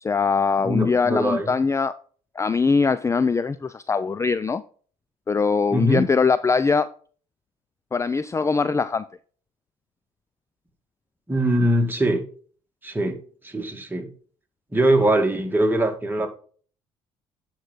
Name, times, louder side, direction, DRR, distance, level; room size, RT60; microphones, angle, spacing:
voice 1, 0.0-1.9 2.4-4.6 5.3-6.9 7.9-9.1, left 5 dB, 20° left, 15 dB, 0.4 m, -22 dB
voice 2, 0.6-1.5 5.7-6.1 11.3-12.2 12.8-14.1 14.7-16.3, right 1 dB, 15° right, 3 dB, 2.1 m, -22 dB
9.9 x 4.7 x 4.0 m, 0.43 s
hypercardioid pair, 65°, 15 cm